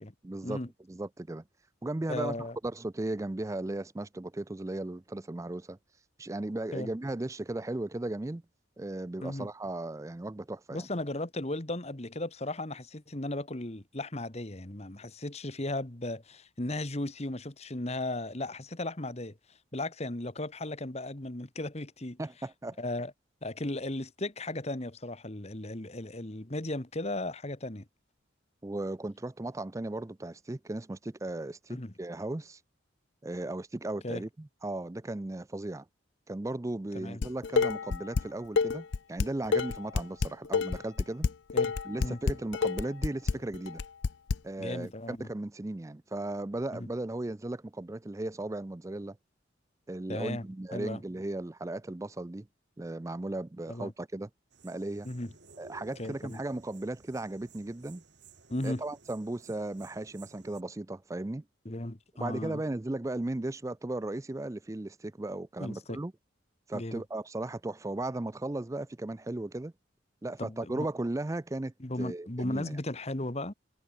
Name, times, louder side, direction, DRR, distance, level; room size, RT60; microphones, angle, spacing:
voice 1, 0.2-0.6 0.9-1.4 1.8-2.4 2.6-5.8 6.2-8.4 8.8-10.9 22.2-22.8 28.6-32.6 33.2-35.8 36.3-41.3 41.8-43.8 44.4-49.2 49.9-52.5 52.8-54.3 54.6-55.1 55.6-58.0 58.6-61.4 62.2-66.1 66.7-69.7 70.2-72.8, right 2 dB, 15° right, 0.4 m, -36 dB
voice 2, 2.1-2.6 6.7-6.9 9.2-9.5 10.7-19.4 19.7-22.2 22.8-23.1 23.4-27.9 31.7-31.9 34.0-34.2 37.0-37.2 41.5-42.2 44.6-45.3 46.7-46.9 50.1-50.5 50.7-51.0 53.7-53.9 55.1-55.3 56.0-56.4 58.5-58.8 61.7-62.6 65.6-66.0 66.7-67.0 70.4-70.9 71.8-73.5, left 1 dB, 35° left, 1.7 m, -36 dB
Dishes pots and pans, 37.2-38.2 38.6-44.4, left 5 dB, 65° left, 0.5 m, -28 dB
sound 1, 54.5-60.6, right 4 dB, 60° right, 2.7 m, -56 dB
head